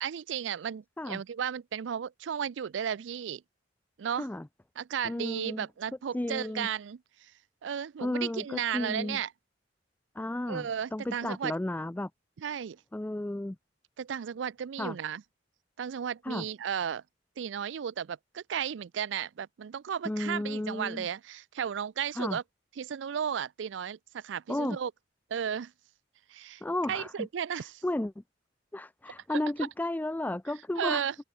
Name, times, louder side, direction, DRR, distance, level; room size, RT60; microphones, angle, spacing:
voice 1, 0.0-3.4 4.0-4.3 4.8-7.3 7.6-9.3 10.5-11.5 12.4-12.8 14.0-15.2 15.8-17.0 17.4-22.4 22.8-24.9 25.3-25.7 26.3-26.6 26.9-27.8 30.8-31.1, right 8 dB, 80° right, 0.4 m, -34 dB
voice 2, 5.0-5.7 6.1-6.7 8.0-9.2 10.2-10.7 10.9-12.1 12.9-13.6 14.8-15.0 16.2-16.4 20.0-21.1 22.2-22.4 24.5-24.8 26.6-27.3 27.5-28.2 28.7-31.0, left 1 dB, 10° left, 0.3 m, -33 dB
open air
head